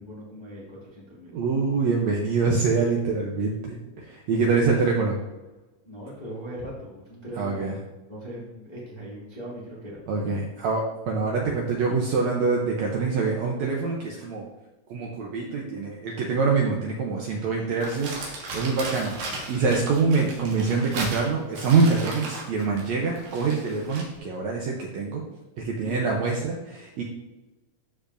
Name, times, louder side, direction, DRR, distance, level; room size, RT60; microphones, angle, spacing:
voice 1, 0.0-1.4 5.8-7.7 8.1-10.0 25.8-26.1, equal, 20° left, -6 dB, 1.0 m, -40 dB
voice 2, 1.3-5.2 7.4-7.7 10.1-14.4 14.9-18.2 18.5-25.2 25.6-27.0, right 4 dB, 70° right, -1 dB, 1.7 m, -25 dB
Crumpling crinkling, 17.8-24.2, right 2 dB, 90° right, 3.4 m, -36 dB
13.5 x 5.0 x 2.6 m, 1.1 s
omnidirectional pair, 4.0 m